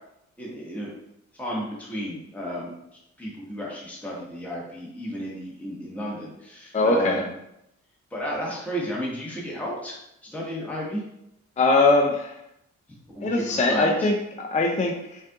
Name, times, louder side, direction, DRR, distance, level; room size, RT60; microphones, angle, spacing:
voice 1, 0.4-0.9 1.4-2.7 3.2-7.3 8.1-10.0 10.2-11.0 13.1-14.1, equal, 5° left, -5 dB, 1.1 m, -33 dB
voice 2, 6.7-7.2 11.6-12.4 13.2-15.2, left 2 dB, 25° left, 1 dB, 0.5 m, -21 dB
5.4 x 2.5 x 3.6 m, 0.80 s
wide cardioid pair, 125°, 29 cm